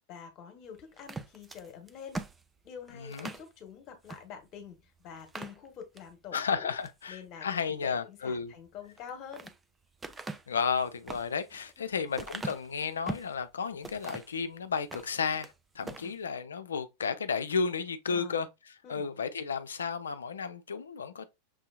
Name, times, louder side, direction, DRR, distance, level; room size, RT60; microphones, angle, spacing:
voice 1, 0.1-2.2 2.6-6.7 7.1-9.5 11.8-12.1 15.8-16.1 18.1-18.5 18.8-19.1, left 7 dB, 35° left, 1.2 m, -47 dB
sound 1, 1.0-3.5 4.0-4.2 4.6-4.7 5.2-6.1 6.6-7.0 8.8-9.6 10.0-13.4 13.8-14.4 14.8-15.5 15.8-16.1, right 3 dB, 15° right, 0.4 m, -42 dB
voice 2, 2.9-3.3 6.3-8.5 10.5-21.3, left 5 dB, 70° left, 0.5 m, -33 dB
6.2 x 2.7 x 2.4 m
figure-of-eight pair, 90°, 0 cm